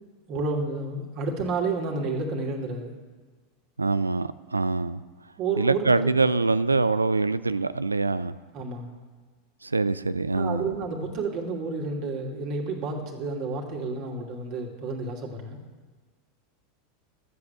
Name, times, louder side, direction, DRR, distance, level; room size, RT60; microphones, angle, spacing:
voice 1, 0.3-2.9 5.4-6.3 8.5-9.0 10.3-15.6, right 3 dB, 45° right, 1 dB, 2.6 m, -30 dB
voice 2, 3.8-5.0 5.6-8.4 9.6-10.6, right 3 dB, 80° right, 16 dB, 0.4 m, -24 dB
13.0 x 8.3 x 7.9 m, 1.4 s
figure-of-eight pair, 85°, 0 cm